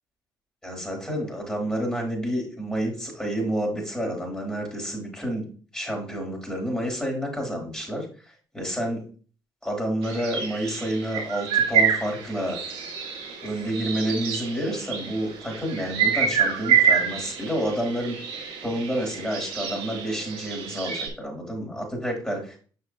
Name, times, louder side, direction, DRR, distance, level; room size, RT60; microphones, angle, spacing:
voice 1, 0.6-5.5 5.7-8.1 8.5-9.0 9.6-12.6 13.4-18.2 18.6-22.6, right 1 dB, 10° left, 0 dB, 3.7 m, -29 dB
sound 1, 10.0-21.1, right 7 dB, 75° right, 2.2 m, -27 dB
6.5 x 5.9 x 3.0 m, 0.40 s
hypercardioid pair, 55°, 10 cm